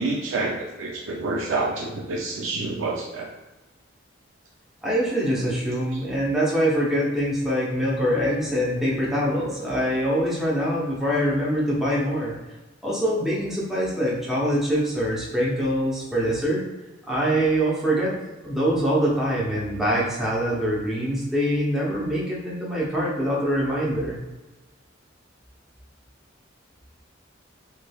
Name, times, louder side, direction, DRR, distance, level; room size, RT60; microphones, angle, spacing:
voice 1, 0.0-3.3, right 3 dB, 70° right, -2 dB, 0.4 m, -28 dB
voice 2, 4.8-12.3 12.8-16.6 17.1-18.2 18.4-24.2, equal, ahead, -7 dB, 0.8 m, -24 dB
3.3 x 3.1 x 2.3 m, 1.1 s
head